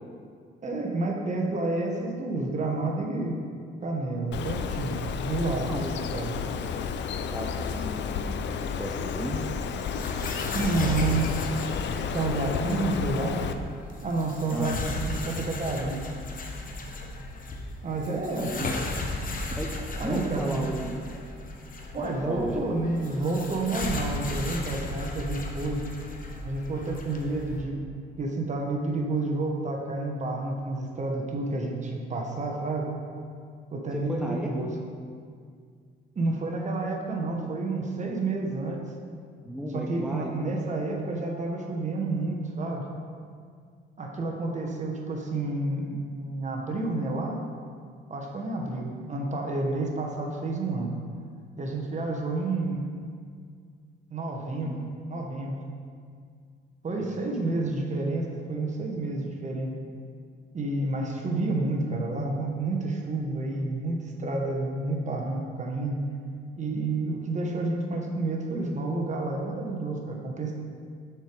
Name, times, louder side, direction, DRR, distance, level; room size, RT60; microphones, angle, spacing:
voice 1, 0.6-3.4 3.8-5.7 6.1-6.3 10.5-11.6 12.1-13.4 14.0-16.0 17.8-18.7 20.0-20.7 21.9-25.8 26.4-27.8 28.2-32.9 33.7-34.7 36.1-38.8 39.7-42.8 44.0-47.4 48.1-50.9 51.6-52.9 54.1-54.7 55.1-55.6 56.8-59.7 60.5-66.0 66.6-70.5, right 2 dB, 35° right, 0 dB, 1.1 m, -30 dB
Bird, 4.3-13.5, left 6 dB, 65° left, 0.4 m, -32 dB
voice 2, 5.6-6.1 6.6-6.8 7.3-9.5 14.5-14.8 18.4-18.7 19.6-20.9 22.0-22.7 33.9-34.8 39.4-40.3 54.7-54.9 57.0-57.5, equal, 5° right, -1 dB, 0.6 m, -35 dB
sound 1, 9.6-27.6, left 2 dB, 45° left, 0.9 m, -35 dB
6.4 x 4.6 x 5.1 m, 2.1 s
cardioid pair, 90°, 20 cm